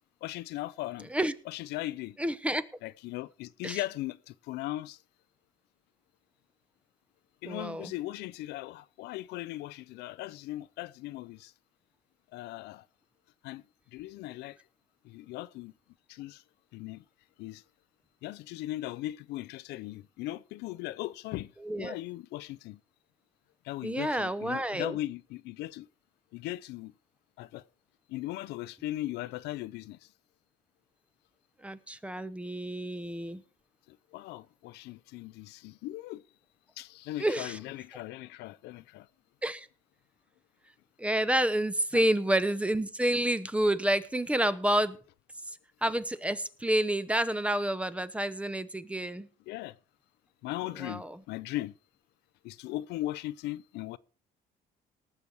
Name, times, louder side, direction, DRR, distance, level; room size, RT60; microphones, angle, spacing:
voice 1, 0.2-1.1 1.5-2.2 2.8-5.0 7.4-11.5 12.3-12.8 13.4-13.6 13.9-14.6 15.0-15.7 16.1-16.4 16.7-17.0 17.4-17.6 18.2-21.5 21.8-22.8 23.6-25.9 26.3-26.9 27.4-27.6 28.1-30.0 34.1-36.2 36.8-39.1 41.9-42.1 49.5-49.8 50.4-51.7 52.4-54.0, left 16 dB, 85° left, 0.5 m, -38 dB
voice 2, 2.2-2.6 3.6-3.8 7.5-7.9 21.6-22.0 23.8-24.9 31.6-33.4 37.2-37.6 39.4-39.7 41.0-45.0 45.8-49.3 50.8-51.1, right 1 dB, 5° right, 0.8 m, -29 dB
18.5 x 6.9 x 4.7 m
cardioid pair, 110°, 17 cm